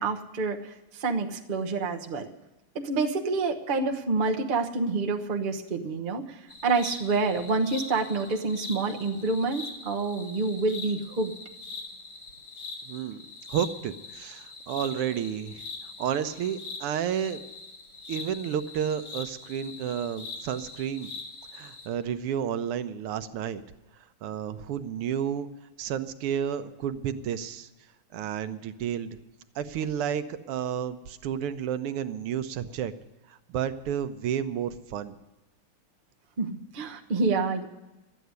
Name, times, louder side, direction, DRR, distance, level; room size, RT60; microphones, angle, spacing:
voice 1, 0.0-2.3 2.7-11.3 36.4-37.6, right 3 dB, 35° right, 2 dB, 0.8 m, -28 dB
sound 1, 6.5-21.9, left 3 dB, 75° left, 3.3 m, -42 dB
voice 2, 12.9-13.2 13.5-15.6 16.0-17.4 18.1-21.1 21.5-23.6 24.2-25.5 25.8-27.7 28.1-29.2 29.6-32.9 33.3-35.2, right 9 dB, 85° right, 10 dB, 1.7 m, -31 dB
13.0 x 9.1 x 9.4 m, 1.0 s
omnidirectional pair, 2.4 m